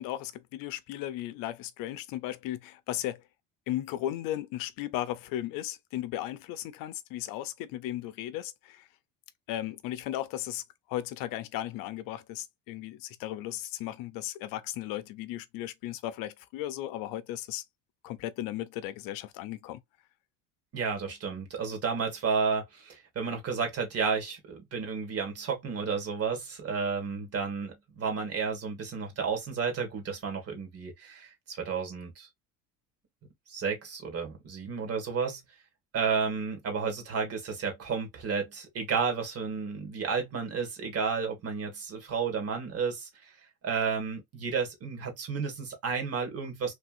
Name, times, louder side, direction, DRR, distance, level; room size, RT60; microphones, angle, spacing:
voice 1, 0.0-3.2 3.7-8.9 9.5-10.6 10.9-17.6 18.0-19.8, left 13 dB, 65° left, 0.6 m, -36 dB
voice 2, 20.7-32.3 33.5-35.4 35.9-43.1 43.6-46.7, right 5 dB, 40° right, 2.0 m, -32 dB
3.4 x 2.6 x 2.5 m
supercardioid pair, 115°, 36 cm